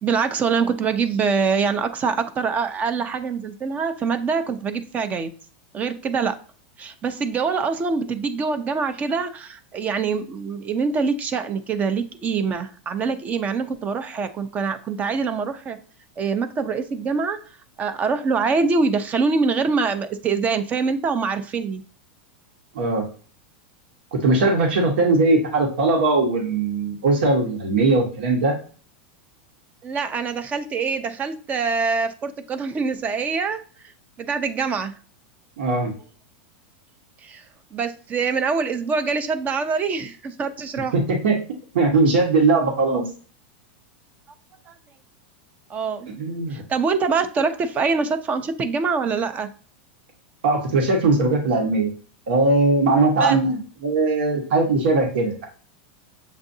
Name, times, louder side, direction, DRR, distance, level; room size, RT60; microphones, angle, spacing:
voice 1, 0.0-5.3 5.7-6.4 6.8-15.8 16.2-17.4 17.8-21.8 29.8-33.6 34.2-34.9 37.2-37.4 37.7-40.9 44.7-44.8 45.7-46.1 46.5-49.5 53.2-53.4, right 5 dB, 25° right, 10 dB, 0.6 m, -24 dB
voice 2, 22.7-23.1 24.1-28.5 35.6-35.9 40.9-41.4 41.7-43.1 46.2-46.6 50.4-51.9 52.3-55.4, right 3 dB, 80° right, 1 dB, 1.3 m, -20 dB
7.2 x 2.5 x 2.7 m, 0.41 s
hypercardioid pair, 120°, 6 cm